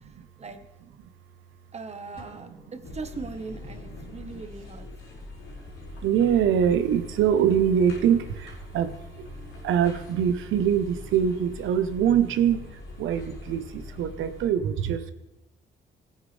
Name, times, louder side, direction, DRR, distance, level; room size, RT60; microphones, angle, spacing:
voice 1, 1.7-4.9, right 4 dB, 35° right, 8 dB, 1.4 m, -39 dB
sound 1, 2.2-4.0, left 2 dB, 25° left, 3.5 m, -52 dB
sound 2, 2.8-14.5, left 2 dB, 90° left, 4.5 m, -43 dB
voice 2, 6.0-9.3 9.6-15.1, right 8 dB, 80° right, 11 dB, 1.0 m, -24 dB
17.0 x 9.4 x 3.4 m, 1.1 s
cardioid pair, 90°, 20 cm